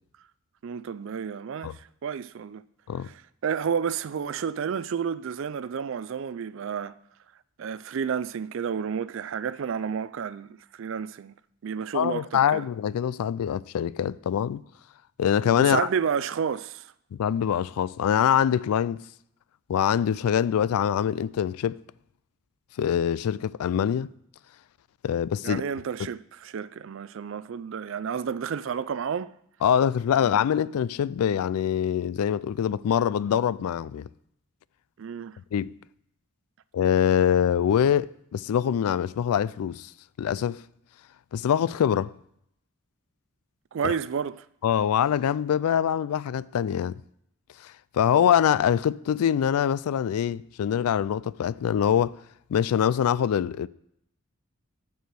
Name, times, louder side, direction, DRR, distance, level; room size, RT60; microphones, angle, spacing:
voice 1, 0.6-2.6 3.0-7.0 7.6-11.3 11.6-12.7 15.6-16.9 25.4-29.3 30.2-30.3 35.0-35.4 43.7-44.5, right 7 dB, 55° right, 0.3 m, -31 dB
voice 2, 11.9-14.6 15.2-15.9 17.1-19.0 19.7-21.8 22.8-24.1 25.0-25.6 29.6-34.1 35.5-35.7 36.7-39.9 40.2-40.6 41.3-42.1 43.8-43.9 44.6-46.9 47.6-52.1 52.5-53.7, left 9 dB, 80° left, 0.3 m, -24 dB
9.1 x 4.8 x 6.7 m
head